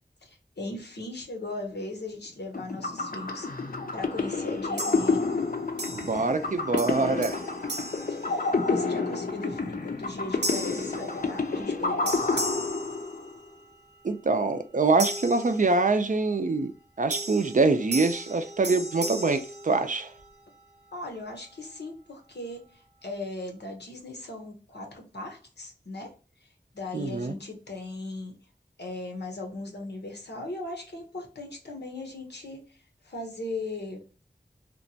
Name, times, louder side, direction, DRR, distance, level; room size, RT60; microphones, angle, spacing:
voice 1, 0.2-5.3 8.1-12.5 20.9-26.1 26.7-28.3 28.8-32.8 33.0-34.0, left 2 dB, 85° left, 0.8 m, -38 dB
sound 1, 2.5-13.4, left 3 dB, 55° left, 0.5 m, -29 dB
sound 2, 4.8-5.4 5.8-6.5 6.8-8.9 9.4-9.7 10.4-11.8 12.1-13.7 15.0-16.2 17.1-20.4, right 1 dB, 85° right, 0.6 m, -36 dB
voice 2, 6.0-7.4 14.0-16.7 17.0-20.1 26.9-27.3, right 3 dB, 50° right, 0.4 m, -24 dB
2.9 x 2.2 x 2.6 m
wide cardioid pair, 40°, 17 cm